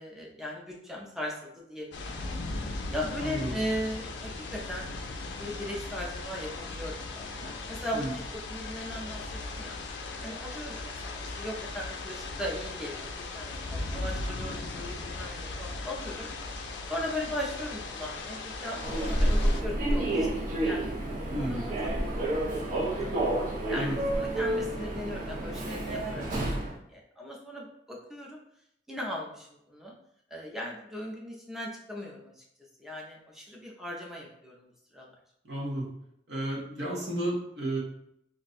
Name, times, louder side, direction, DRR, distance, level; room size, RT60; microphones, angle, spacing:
voice 1, 0.0-2.0 2.5-9.2 9.5-9.8 10.2-16.3 16.5-18.8 19.0-23.2 23.7-26.6 26.9-28.4 28.9-29.9 30.3-32.4 32.8-35.1, left 1 dB, ahead, -2 dB, 0.5 m, -38 dB
sound 1, 1.9-19.6, left 3 dB, 85° left, 0.4 m, -38 dB
voice 2, 3.2-3.5 7.9-8.2 21.3-21.7 23.7-23.9 35.4-35.9 36.3-37.8, right 1 dB, 70° right, -4 dB, 1.0 m, -32 dB
Human voice / Subway metro underground, 18.8-26.7, right 1 dB, 45° right, 0.6 m, -29 dB
2.6 x 2.2 x 4.0 m, 0.76 s
head